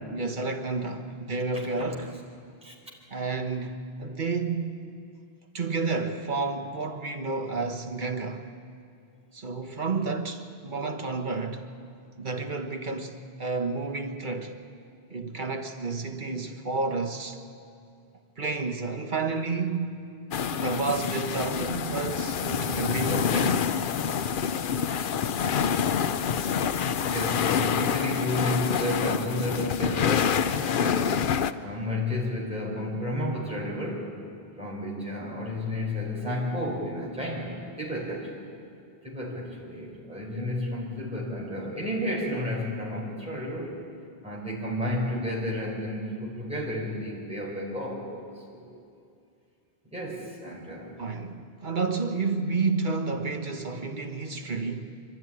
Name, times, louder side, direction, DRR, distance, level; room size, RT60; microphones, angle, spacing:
voice 1, 0.1-2.1 3.1-4.9 5.5-8.5 9.3-11.7 12.2-14.6 15.1-17.4 18.4-20.0 20.5-23.8 51.0-55.0, right 4 dB, 50° right, 1.5 m, -30 dB
sound 1, 20.3-31.5, left 7 dB, 60° left, 0.8 m, -27 dB
voice 2, 27.0-31.4 31.6-34.1 34.6-38.3 39.0-43.8 44.2-48.1 48.3-48.7 49.9-50.9, left 1 dB, 5° right, 4.3 m, -32 dB
26.0 x 12.5 x 9.9 m
omnidirectional pair, 1.1 m